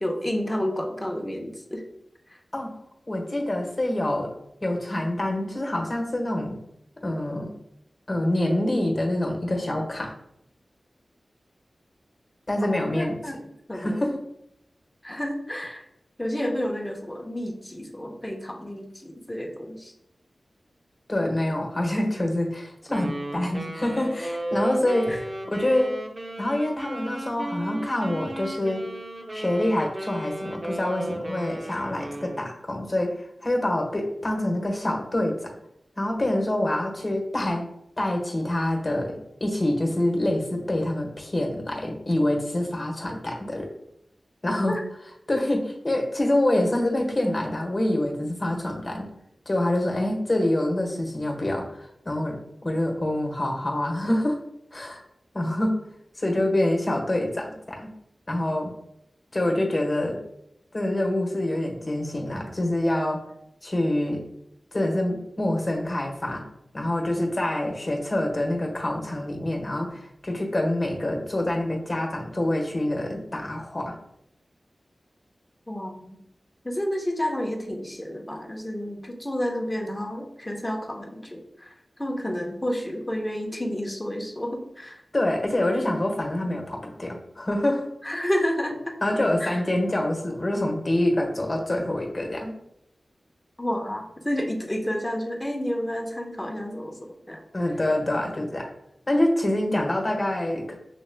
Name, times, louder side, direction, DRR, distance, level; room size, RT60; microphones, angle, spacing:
voice 1, 0.0-1.8 2.3-2.4 12.6-13.4 13.7-14.1 15.0-15.8 16.2-19.9 25.1-25.2 44.7-44.8 75.7-76.2 76.6-81.7 82.0-85.0 88.0-89.0 89.4-89.6 93.6-97.4, equal, 20° left, 2 dB, 0.9 m, -30 dB
voice 2, 3.1-4.3 4.6-6.6 7.0-7.5 8.1-10.1 12.5-13.1 13.7-14.2 21.1-26.0 26.4-28.8 29.3-35.5 36.0-37.7 38.0-43.7 44.4-44.7 45.3-49.1 49.5-54.4 54.7-55.0 55.3-55.8 56.2-57.9 58.3-58.7 59.3-60.2 60.7-63.2 63.6-64.2 64.7-66.4 66.7-73.9 85.1-87.9 89.0-92.6 97.5-98.7 99.1-100.8, left 1 dB, 40° left, 1 dB, 1.2 m, -26 dB
Wind instrument woodwind instrument, 22.9-32.5, right 1 dB, 45° right, 0.7 m, -34 dB
6.7 x 3.1 x 2.2 m, 0.78 s
cardioid pair, 40°, 0 cm